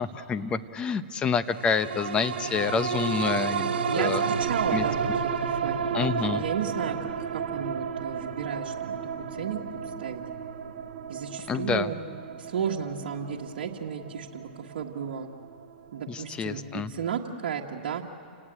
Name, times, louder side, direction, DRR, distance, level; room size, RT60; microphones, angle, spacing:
voice 1, 0.0-4.2 4.7-4.8 5.9-6.4 11.5-11.9 16.1-16.9, left 6 dB, 15° left, 12 dB, 0.8 m, -28 dB
sound 1, 1.5-16.2 16.6-16.7, right 6 dB, 80° right, 1.7 m, -32 dB
voice 2, 3.9-7.0 7.3-9.0 9.4-9.6 10.0-10.2 11.1-12.0 12.4-15.3 15.9-18.0, right 7 dB, 65° right, -2 dB, 1.7 m, -33 dB
30.0 x 18.5 x 8.9 m, 2.5 s
hypercardioid pair, 145°, 5 cm